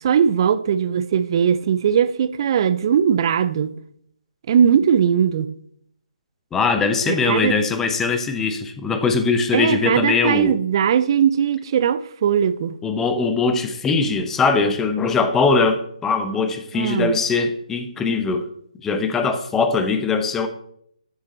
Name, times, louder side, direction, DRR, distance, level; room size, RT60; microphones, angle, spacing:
voice 1, 0.0-3.8 4.5-5.6 7.1-7.6 9.5-12.8 16.7-17.2, right 8 dB, 35° right, 0.5 m, -19 dB
voice 2, 6.5-10.6 12.8-18.5 18.8-20.5, left 4 dB, 10° left, 0.8 m, -21 dB
12.5 x 6.3 x 3.9 m
figure-of-eight pair, 145°, 4 cm